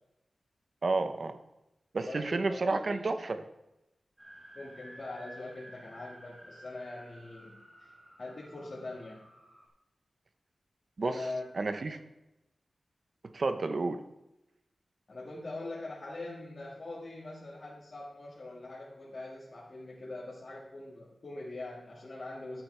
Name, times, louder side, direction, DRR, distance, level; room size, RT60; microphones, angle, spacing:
voice 1, 0.8-1.4 1.9-3.4 11.0-11.2 11.5-12.0 13.3-14.0, right 3 dB, 50° right, 9 dB, 0.8 m, -30 dB
voice 2, 2.1-3.1 4.5-7.9 8.2-9.2 11.0-11.5 15.1-22.6, left 2 dB, 50° left, -6 dB, 2.0 m, -42 dB
sound 1, 4.2-9.7, right 1 dB, 5° right, 2.9 m, -53 dB
12.5 x 8.1 x 3.3 m, 0.91 s
wide cardioid pair, 120°, 0 cm